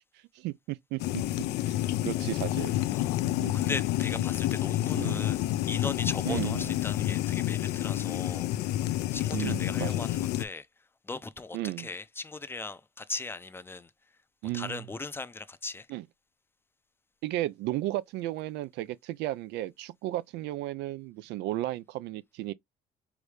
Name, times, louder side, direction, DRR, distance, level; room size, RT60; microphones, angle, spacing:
voice 1, 0.3-1.2 1.6-2.7 3.4-3.7 4.9-5.3 6.3-6.7 9.3-10.0 11.5-11.9 14.4-14.8 15.9-16.0 17.2-22.5, right 16 dB, 85° right, 0.5 m, -34 dB
sound 1, 1.0-10.4, left 14 dB, 85° left, 0.5 m, -29 dB
voice 2, 1.9-2.6 2.9-3.3 3.5-8.8 9.1-13.9 14.5-15.9, left 3 dB, 15° left, 0.5 m, -39 dB
4.8 x 2.7 x 3.3 m
cardioid pair, 110°, 17 cm